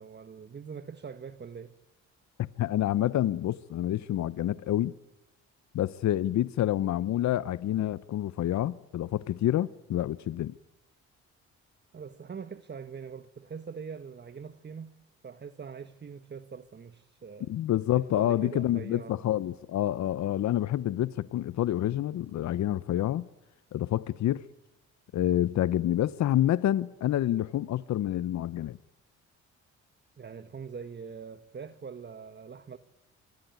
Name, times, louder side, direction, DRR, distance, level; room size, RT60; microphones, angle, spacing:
voice 1, 0.0-1.7 11.9-15.0 15.2-17.5 18.1-19.2 30.2-32.8, right 6 dB, 35° right, 1.5 m, -43 dB
voice 2, 2.6-4.9 5.7-10.5 17.5-23.3 23.7-24.4 25.1-28.8, left 12 dB, 65° left, 0.8 m, -28 dB
25.5 x 22.0 x 9.4 m
cardioid pair, 90°, 30 cm